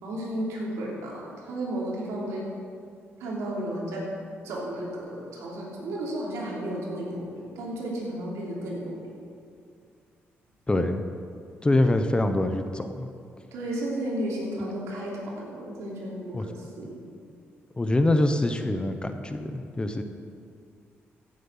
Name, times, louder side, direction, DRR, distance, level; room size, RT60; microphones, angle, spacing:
voice 1, 0.0-2.5 3.2-4.0 4.4-9.1 13.5-17.0, right 1 dB, 90° right, -3 dB, 3.1 m, -33 dB
voice 2, 10.7-11.0 11.6-13.1 16.3-16.4 17.7-20.0, left 1 dB, 20° left, 8 dB, 1.0 m, -24 dB
15.5 x 7.7 x 5.7 m, 2.3 s
cardioid pair, 70°, 5 cm